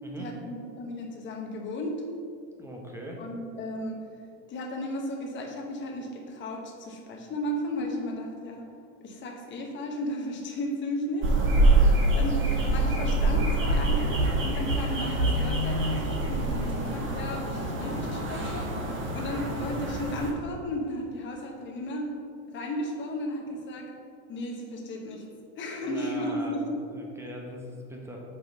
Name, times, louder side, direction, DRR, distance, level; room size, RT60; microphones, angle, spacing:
voice 1, 0.2-2.0 3.2-4.0 4.5-8.7 9.0-11.3 12.1-18.7 19.1-22.1 22.5-23.9 24.3-25.2 25.6-26.7, left 1 dB, 30° left, 1 dB, 1.0 m, -34 dB
voice 2, 2.6-3.2 11.4-11.7 16.5-16.7 25.8-28.2, equal, 5° right, -1 dB, 0.9 m, -41 dB
sound 1, 11.2-20.3, right 2 dB, 30° right, 1.1 m, -25 dB
5.3 x 3.8 x 5.9 m, 2.3 s
supercardioid pair, 125°, 40 cm